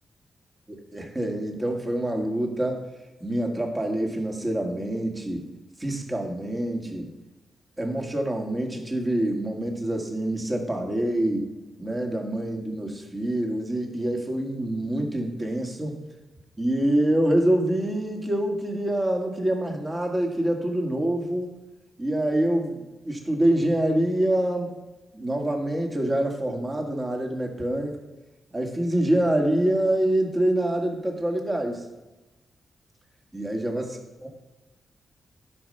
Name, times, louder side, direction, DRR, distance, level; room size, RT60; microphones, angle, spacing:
voice 1, 0.7-2.8 3.2-5.5 5.8-7.1 7.8-11.5 11.8-16.0 16.6-21.6 22.0-24.7 25.1-28.0 28.5-31.8 33.3-34.3, right 1 dB, 25° right, 2 dB, 2.1 m, -26 dB
11.0 x 5.5 x 5.7 m, 1.1 s
cardioid pair, 80°, 0 cm